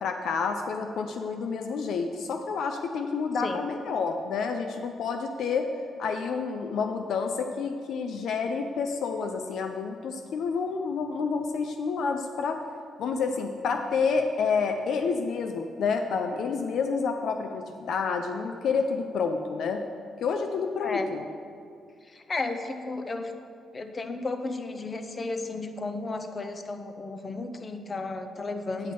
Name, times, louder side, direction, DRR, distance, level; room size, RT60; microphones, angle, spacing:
voice 1, 0.0-5.7 6.0-12.6 13.0-19.8 20.2-21.2 28.8-28.9, left 5 dB, 70° left, 6 dB, 0.5 m, -29 dB
voice 2, 22.1-23.3 23.7-28.9, left 3 dB, 35° left, 8 dB, 0.7 m, -33 dB
9.6 x 6.3 x 4.3 m, 2.3 s
cardioid pair, 70°, 0 cm